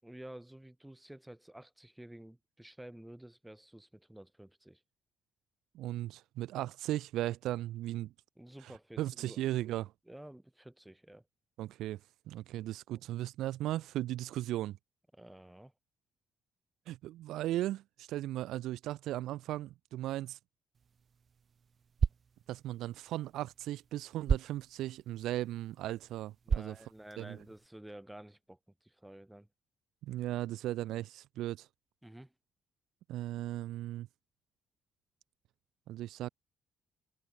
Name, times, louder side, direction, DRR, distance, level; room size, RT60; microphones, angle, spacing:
voice 1, 0.0-4.8 8.4-9.4 10.1-11.3 12.9-13.0 15.1-15.7 26.5-29.5 32.0-32.3, right 1 dB, 5° right, 7.0 m, -51 dB
voice 2, 5.7-8.1 8.6-8.7 9.0-9.9 11.6-12.0 12.3-14.8 16.9-20.4 22.5-26.8 27.2-27.4 30.0-31.7 33.1-34.1 35.9-36.3, right 14 dB, 85° right, 0.5 m, -37 dB
sound 1, 20.7-27.7, right 6 dB, 45° right, 2.4 m, -38 dB
cardioid pair, 90°, 0 cm